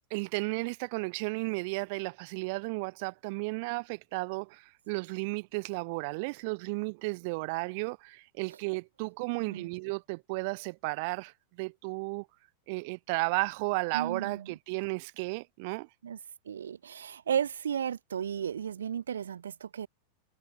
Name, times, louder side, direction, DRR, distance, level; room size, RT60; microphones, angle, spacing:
voice 1, 0.1-12.3 12.7-15.9, right 29 dB, 45° right, 2.6 m, -34 dB
voice 2, 13.9-14.5 16.0-16.2 16.4-19.9, right 8 dB, 65° right, 1.2 m, -34 dB
figure-of-eight pair, 90°, 0 cm